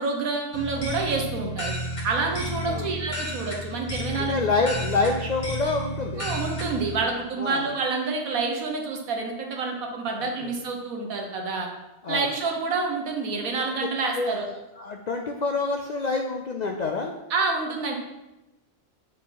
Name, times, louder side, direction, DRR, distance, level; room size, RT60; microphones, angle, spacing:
voice 1, 0.0-1.7 2.0-4.4 6.2-11.7 12.1-14.5 17.3-17.9, right 4 dB, 80° right, 2 dB, 1.5 m, -28 dB
sound 1, 0.5-7.0, equal, 30° left, 1.5 m, -32 dB
voice 2, 2.6-2.9 4.2-6.3 7.4-7.7 10.4-10.6 12.0-12.3 13.8-13.9 14.2-17.1, left 3 dB, 65° left, 2 dB, 0.4 m, -27 dB
7.4 x 4.3 x 4.0 m, 0.98 s
omnidirectional pair, 1.5 m